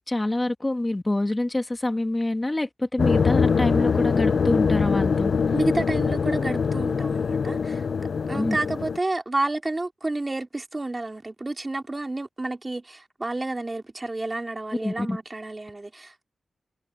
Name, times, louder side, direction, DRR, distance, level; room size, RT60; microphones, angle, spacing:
voice 1, 0.0-5.3 8.3-8.6 14.8-15.2, left 1 dB, 15° left, 1.2 m, -26 dB
sound 1, 3.0-9.0, left 5 dB, 60° left, 0.4 m, -23 dB
voice 2, 5.5-7.8 8.3-16.2, right 2 dB, 20° right, 3.1 m, -30 dB
wide cardioid pair, 120°, 0 cm